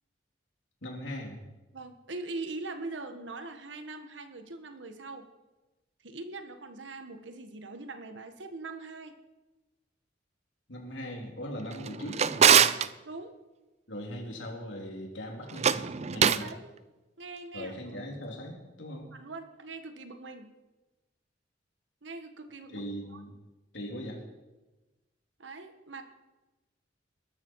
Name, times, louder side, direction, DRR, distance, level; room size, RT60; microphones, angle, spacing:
voice 1, 0.8-1.4 10.7-12.8 13.9-16.5 17.5-19.2 22.7-23.3 23.7-24.2, equal, 85° left, 0 dB, 3.6 m, -40 dB
voice 2, 1.7-5.3 6.0-9.1 13.0-13.4 16.4-16.7 17.2-17.8 19.1-20.5 22.0-22.8 23.1-23.2 25.4-26.0, right 3 dB, 80° right, 7 dB, 1.4 m, -42 dB
Drawer open or close, 11.7-12.9 15.5-16.5, right 7 dB, 35° right, 0.5 m, -23 dB
21.0 x 12.5 x 4.8 m, 1.1 s
head